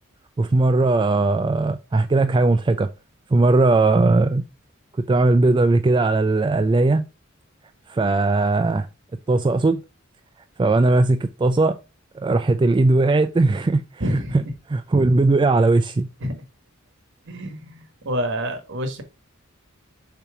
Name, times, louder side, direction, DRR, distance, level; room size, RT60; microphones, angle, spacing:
voice 1, 0.4-2.9 3.3-4.4 5.0-7.0 7.9-8.9 9.3-9.8 10.6-11.8 12.1-14.4 14.7-16.1, right 2 dB, 20° right, 0.3 m, -19 dB
voice 2, 14.0-14.5 16.2-16.4 17.3-19.0, equal, 60° right, 1.2 m, -28 dB
6.9 x 2.9 x 4.7 m
head